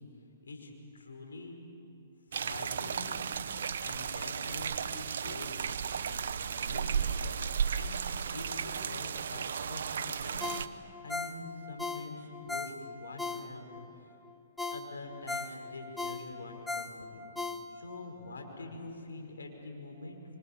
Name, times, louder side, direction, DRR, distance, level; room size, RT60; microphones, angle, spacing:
voice 1, 0.4-1.6 2.3-3.3 3.8-5.6 6.0-6.2 6.6-7.1 7.7-8.0 8.3-10.5 11.0-14.2 14.7-20.2, left 2 dB, 85° left, 2 dB, 5.4 m, -45 dB
sound 1, 2.3-10.7, right 7 dB, 70° right, 1.0 m, -34 dB
Ringtone, 10.4-13.9 14.2-14.3 14.6-18.0 18.4-18.5, left 3 dB, 5° left, 1.1 m, -38 dB
27.0 x 25.0 x 7.4 m, 2.7 s
hypercardioid pair, 135°, 0 cm